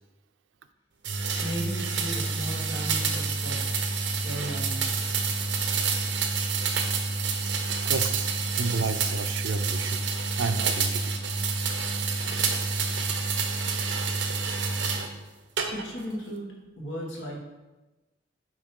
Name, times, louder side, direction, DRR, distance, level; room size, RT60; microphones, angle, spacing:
sound 1, 1.0-15.1 15.6-16.1, right 4 dB, 70° right, 0.8 m, -28 dB
voice 1, 1.4-3.6 4.2-5.0 7.8-7.9 15.7-17.4, equal, 70° left, -2 dB, 1.9 m, -36 dB
voice 2, 7.8-8.3 8.5-10.0 10.4-11.1, right 4 dB, 85° right, 10 dB, 0.5 m, -31 dB
8.7 x 3.2 x 5.3 m, 1.1 s
head